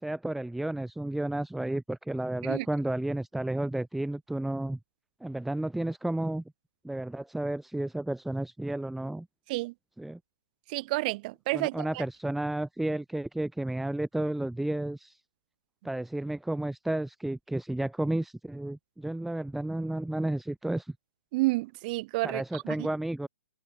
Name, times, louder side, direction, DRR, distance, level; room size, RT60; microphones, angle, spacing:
voice 1, 0.0-4.8 5.2-6.4 6.8-9.3 10.0-10.2 11.5-15.2 15.8-20.9 22.2-23.3, right 1 dB, ahead, 2.9 m, -32 dB
voice 2, 10.7-12.0 21.3-22.6, right 22 dB, 35° right, 2.0 m, -30 dB
hypercardioid pair, 140°, 7 cm